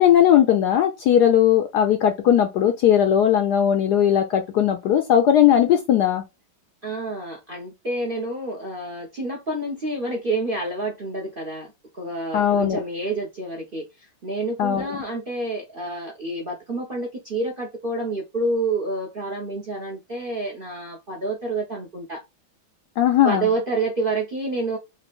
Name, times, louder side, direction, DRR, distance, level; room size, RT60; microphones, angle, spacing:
voice 1, 0.0-6.2 12.3-12.8 14.6-15.0 23.0-23.5, left 10 dB, 70° left, 1.0 m, -18 dB
voice 2, 6.8-13.8 14.2-22.2 23.2-24.8, right 2 dB, 40° right, 0.8 m, -28 dB
5.3 x 2.4 x 2.4 m
omnidirectional pair, 2.2 m